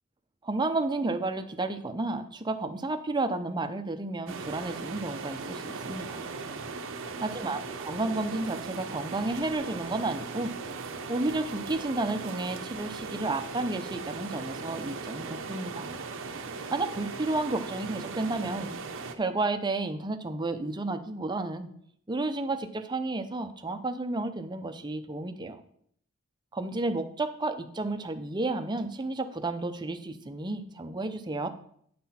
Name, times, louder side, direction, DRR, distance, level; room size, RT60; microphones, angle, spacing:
voice 1, 0.4-6.2 7.2-10.5 11.1-15.9 16.7-18.7 19.1-21.7 22.1-25.6 26.5-31.5, right 2 dB, 20° right, 7 dB, 0.6 m, -32 dB
sound 1, 4.3-19.2, right 4 dB, 65° right, 0.8 m, -38 dB
9.4 x 5.8 x 4.3 m, 0.65 s
head